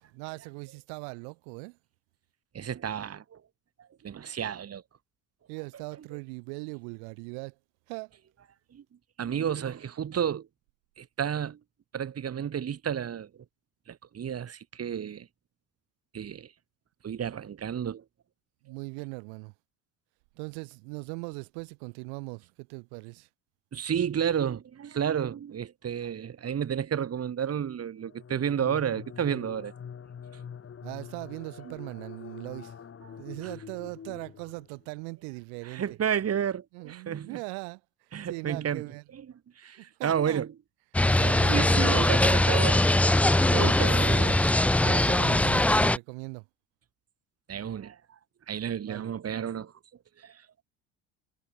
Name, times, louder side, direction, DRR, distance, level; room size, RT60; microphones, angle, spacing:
voice 1, 0.0-1.8 5.5-7.6 7.9-8.1 18.6-19.5 20.4-23.3 30.8-32.8 33.2-36.0 36.7-39.0 39.8-40.4 41.2-41.9 44.0-46.5 48.8-49.1, right 40 dB or more, 80° right, 7.4 m, -40 dB
voice 2, 2.5-3.4 3.8-4.8 8.7-8.8 9.2-10.5 11.0-11.6 11.9-13.3 13.9-15.3 16.1-16.5 17.0-18.0 23.7-29.7 31.6-31.7 35.6-37.4 38.1-38.9 39.1-39.2 39.6-40.5 41.5-44.1 47.5-48.2 48.5-49.7 50.2-50.6, right 8 dB, 45° right, 7.8 m, -31 dB
sound 1, 28.0-34.9, left 7 dB, 40° left, 7.6 m, -45 dB
sound 2, 40.9-46.0, left 1 dB, 5° left, 0.4 m, -22 dB
supercardioid pair, 80°, 35 cm